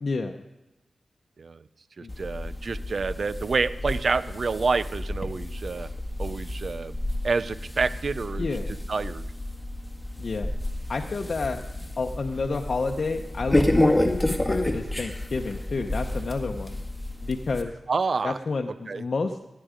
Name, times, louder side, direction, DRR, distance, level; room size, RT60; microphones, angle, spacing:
voice 1, 0.0-0.4 2.0-2.1 8.4-8.8 10.2-10.5 10.9-11.6 12.0-16.8 17.2-17.7 18.2-19.4, left 3 dB, 60° left, 3 dB, 0.8 m, -30 dB
voice 2, 2.0-5.9 6.2-7.0 7.2-8.5 8.9-9.3 17.9-18.4 18.9-19.0, right 4 dB, 60° right, 16 dB, 0.6 m, -28 dB
sound 1, 2.1-17.6, left 1 dB, 10° left, 1.8 m, -30 dB
16.0 x 9.3 x 5.1 m, 1.0 s
cardioid pair, 55°, 0 cm